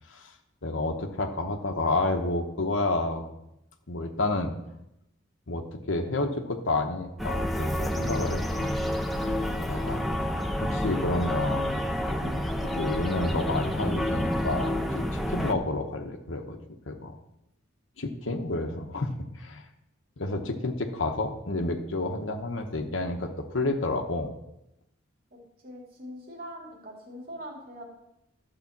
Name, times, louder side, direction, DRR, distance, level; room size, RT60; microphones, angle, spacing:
voice 1, 0.6-3.2 3.9-4.5 5.5-8.7 9.4-10.0 10.6-11.9 12.2-12.3 12.6-14.9 15.3-16.6 16.9-17.1 18.0-19.6 20.2-24.3, left 2 dB, 85° left, 3 dB, 1.1 m, -30 dB
sound 1, 7.2-15.5, equal, ahead, 0.7 m, -29 dB
voice 2, 25.3-27.8, equal, 50° right, -1 dB, 2.5 m, -43 dB
12.0 x 5.0 x 7.3 m, 0.84 s
head